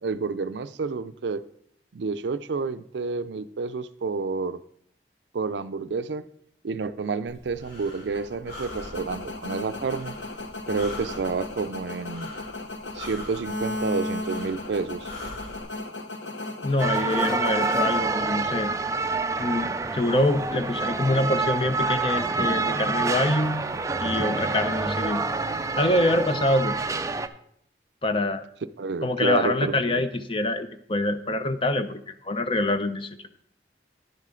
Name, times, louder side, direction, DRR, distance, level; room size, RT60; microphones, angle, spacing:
voice 1, 0.0-1.4 1.9-4.6 5.3-6.3 6.6-10.2 10.7-12.3 12.9-15.1 28.8-30.0, right 4 dB, 80° right, 13 dB, 0.4 m, -29 dB
Breathing, 7.3-15.6, left 1 dB, 65° left, 3.5 m, -43 dB
sound 1, 8.1-18.6, left 2 dB, 90° left, 0.8 m, -36 dB
voice 2, 16.6-18.7 19.4-23.6 24.0-25.2 25.8-26.8 28.0-28.4 29.0-33.1, left 1 dB, 30° left, 10 dB, 0.6 m, -25 dB
sound 2, 16.8-27.3, right 3 dB, 20° right, 0.4 m, -27 dB
10.5 x 7.4 x 3.8 m, 0.69 s
head